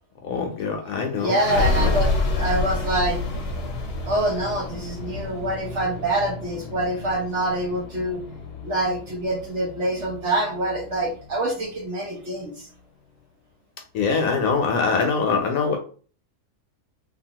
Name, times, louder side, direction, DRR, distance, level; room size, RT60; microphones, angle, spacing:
voice 1, 0.2-2.0 13.9-15.8, left 5 dB, 70° left, 3 dB, 1.0 m, -24 dB
sound 1, 1.2-12.5, left 2 dB, 85° left, 1.2 m, -29 dB
voice 2, 1.2-3.2 4.0-8.2 8.6-12.7, right 1 dB, 55° right, -1 dB, 0.9 m, -25 dB
2.9 x 2.4 x 2.8 m, 0.41 s
omnidirectional pair, 1.7 m